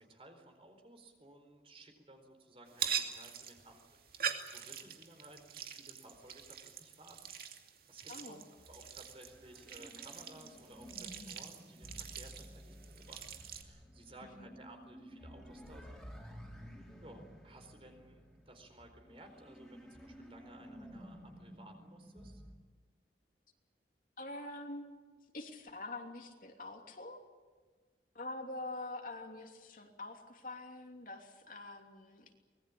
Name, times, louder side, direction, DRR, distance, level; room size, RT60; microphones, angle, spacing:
voice 1, 0.0-3.8 4.1-7.3 7.9-8.4 8.7-13.3 13.5-22.4, right 1 dB, 30° right, 6 dB, 4.1 m, -57 dB
sound 1, 2.7-13.6, right 8 dB, 55° right, 2.6 m, -43 dB
voice 2, 8.1-8.4 14.4-14.5 24.2-27.2 28.1-32.3, left 2 dB, 50° left, 3 dB, 3.0 m, -45 dB
sound 2, 8.6-22.6, equal, ahead, 4.5 m, -53 dB
24.5 x 20.5 x 8.7 m, 1.4 s
head